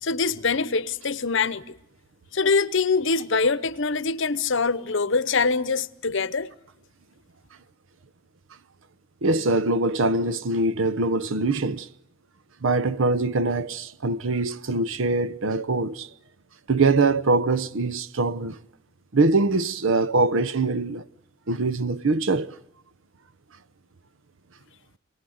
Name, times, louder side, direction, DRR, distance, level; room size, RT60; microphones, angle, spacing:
voice 1, 0.0-1.8 2.3-6.5, left 4 dB, 60° left, 0.9 m, -24 dB
voice 2, 9.2-11.9 12.6-16.1 16.7-18.6 19.1-21.0 21.5-22.5, right 3 dB, 65° right, 0.8 m, -23 dB
27.0 x 19.5 x 7.8 m
head